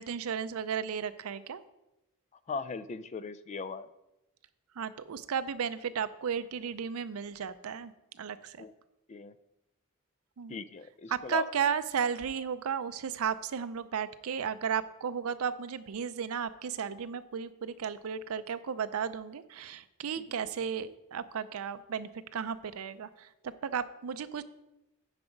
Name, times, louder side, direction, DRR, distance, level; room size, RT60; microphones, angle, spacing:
voice 1, 0.0-1.6 4.8-7.9 8.2-8.6 10.4-10.6 11.1-24.4, right 7 dB, 75° right, 13 dB, 0.5 m, -34 dB
voice 2, 2.5-3.9 8.6-8.7 9.1-9.3 10.5-11.5 20.2-20.3, left 4 dB, 30° left, 15 dB, 0.4 m, -38 dB
9.6 x 4.9 x 5.1 m, 0.94 s
head